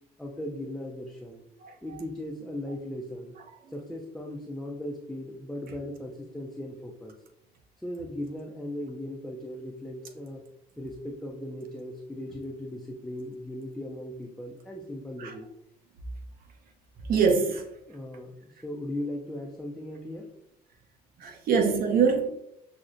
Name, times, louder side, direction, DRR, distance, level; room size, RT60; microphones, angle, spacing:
voice 1, 0.2-1.4 1.8-3.3 3.7-7.2 7.8-10.4 10.8-15.5 17.9-20.3, left 1 dB, 5° left, -1 dB, 0.4 m, -38 dB
voice 2, 17.1-17.6 21.2-22.4, right 5 dB, 60° right, 4 dB, 0.7 m, -24 dB
6.0 x 2.0 x 2.5 m, 0.82 s
cardioid pair, 110°, 17 cm